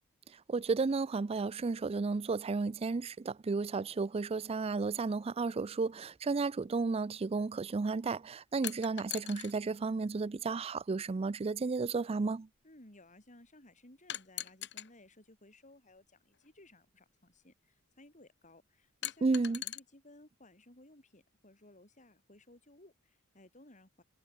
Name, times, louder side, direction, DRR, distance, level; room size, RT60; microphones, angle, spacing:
voice 1, 0.5-12.5 19.2-19.6, right 4 dB, 30° right, 0.4 m, -33 dB
sound 1, 8.6-9.5 10.7-10.8 14.1-14.9 16.3-16.4 19.0-19.8, left 12 dB, 60° left, 2.6 m, -40 dB
voice 2, 12.6-24.0, left 1 dB, 35° left, 7.9 m, -59 dB
head